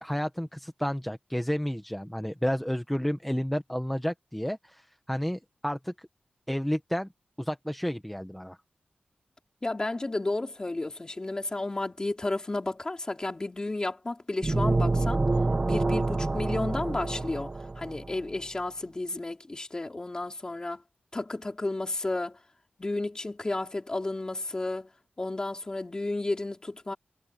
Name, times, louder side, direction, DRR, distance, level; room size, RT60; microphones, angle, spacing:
voice 1, 0.0-6.1 6.5-7.1 7.4-8.6, equal, 5° left, 1.0 m, -31 dB
voice 2, 9.6-15.2 15.7-20.8 21.1-22.4 22.8-24.9 25.2-26.9, left 2 dB, 20° left, 4.0 m, -32 dB
sound 1, 14.4-18.1, right 2 dB, 25° right, 0.7 m, -27 dB
wide cardioid pair, 165°, 3 cm